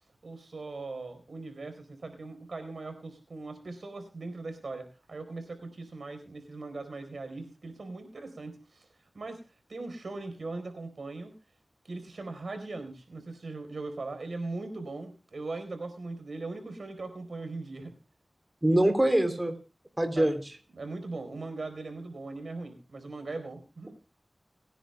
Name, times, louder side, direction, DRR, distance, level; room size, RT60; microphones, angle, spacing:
voice 1, 0.2-8.8 9.1-9.4 9.7-11.3 11.8-18.0 20.2-20.3 20.8-24.0, right 3 dB, 80° right, 9 dB, 4.3 m, -40 dB
voice 2, 18.6-19.5 20.0-20.5, right 1 dB, 20° right, 7 dB, 3.1 m, -24 dB
30.0 x 10.0 x 2.2 m, 0.28 s
cardioid pair, 40°, 0 cm